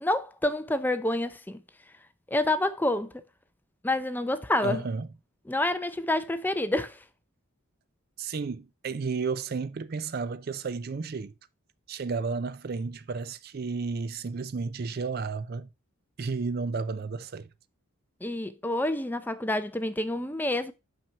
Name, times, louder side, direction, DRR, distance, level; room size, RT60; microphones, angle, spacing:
voice 1, 0.0-1.6 2.3-3.1 3.8-4.8 5.5-7.0 18.2-20.7, left 1 dB, 10° left, 0.5 m, -28 dB
voice 2, 4.6-5.1 8.2-11.3 11.9-15.7 16.2-17.5, right 4 dB, 45° right, 0.4 m, -32 dB
6.0 x 5.8 x 5.5 m
head